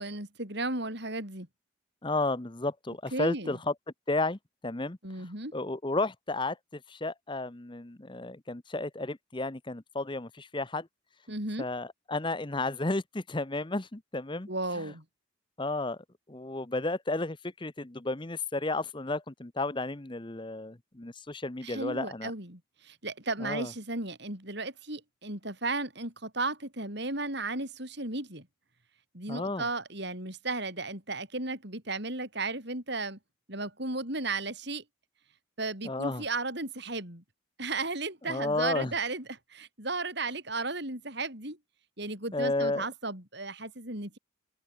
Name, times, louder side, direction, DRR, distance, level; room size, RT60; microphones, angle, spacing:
voice 1, 0.0-1.5 3.1-3.6 5.0-5.6 11.3-11.7 14.5-15.0 21.6-28.5 29.1-33.2 33.5-34.8 35.6-37.2 37.6-41.6 42.0-44.2, right 3 dB, 55° right, 6.9 m, -35 dB
voice 2, 2.0-3.7 4.1-5.0 5.5-10.9 11.6-14.5 14.8-14.9 15.6-16.0 16.3-22.3 23.4-23.7 29.3-29.7 35.8-36.2 38.3-38.9 42.3-42.8, left 2 dB, 25° left, 0.9 m, -32 dB
head